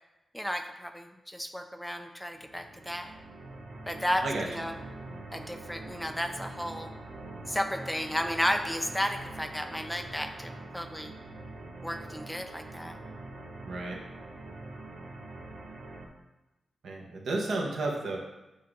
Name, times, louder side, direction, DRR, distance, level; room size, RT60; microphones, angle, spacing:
voice 1, 0.3-3.1 3.9-4.7 5.3-6.9 7.5-11.1 11.8-13.0, equal, 5° left, 5 dB, 0.4 m, -33 dB
sound 1, 2.3-16.1, right 2 dB, 55° right, 0.6 m, -44 dB
voice 2, 13.6-14.0 16.8-18.2, right 2 dB, 85° right, -1 dB, 1.1 m, -32 dB
6.6 x 2.8 x 5.1 m, 1.0 s
wide cardioid pair, 170°, 0 cm